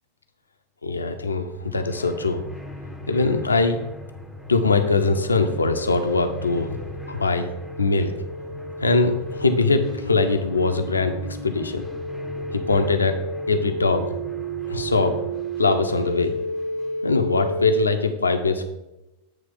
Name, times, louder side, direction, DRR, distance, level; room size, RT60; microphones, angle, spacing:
voice 1, 0.8-2.4 3.1-3.8 4.5-6.8 7.1-7.5 7.8-8.1 8.8-11.1 11.4-11.9 12.5-13.2 13.5-14.1 14.7-15.1 15.6-16.3 17.0-18.6, left 3 dB, 75° left, 6 dB, 0.6 m, -21 dB
sound 1, 1.3-17.1, left 1 dB, 5° right, 0.8 m, -41 dB
sound 2, 4.7-17.8, right 1 dB, 85° right, 0.7 m, -33 dB
8.2 x 3.2 x 5.2 m, 0.96 s
figure-of-eight pair, 90°, 0 cm